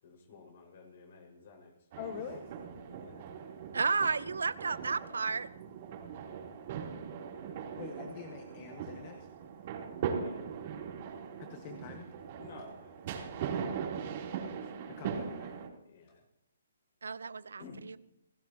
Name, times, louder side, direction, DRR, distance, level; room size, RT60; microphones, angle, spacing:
voice 1, 0.0-1.7 2.9-3.3 10.2-10.5 12.4-13.3 14.8-14.9 15.8-16.2 17.6-17.8, left 3 dB, 50° left, 4 dB, 5.6 m, -53 dB
sound 1, 1.9-15.7, right 7 dB, 40° right, 3.5 m, -40 dB
voice 2, 2.0-2.4 7.7-9.3 11.4-12.1 14.9-15.5, left 8 dB, 35° left, 5 dB, 1.6 m, -45 dB
voice 3, 3.7-5.5 17.0-18.0, right 5 dB, 80° right, 16 dB, 0.8 m, -32 dB
28.0 x 17.0 x 3.0 m, 0.81 s
hypercardioid pair, 145°, 0 cm